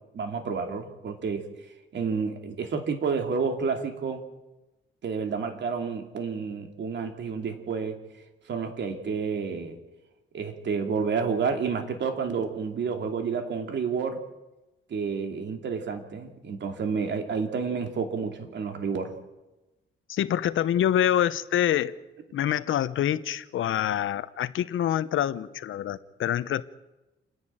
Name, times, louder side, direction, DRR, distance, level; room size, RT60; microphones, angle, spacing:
voice 1, 0.1-1.4 1.9-4.2 5.0-8.0 8.5-9.8 10.3-14.2 14.9-19.2, right 5 dB, 60° right, 2.8 m, -30 dB
voice 2, 20.1-21.9 22.3-26.6, left 11 dB, 75° left, 0.9 m, -26 dB
28.0 x 10.5 x 8.9 m
cardioid pair, 120°, 21 cm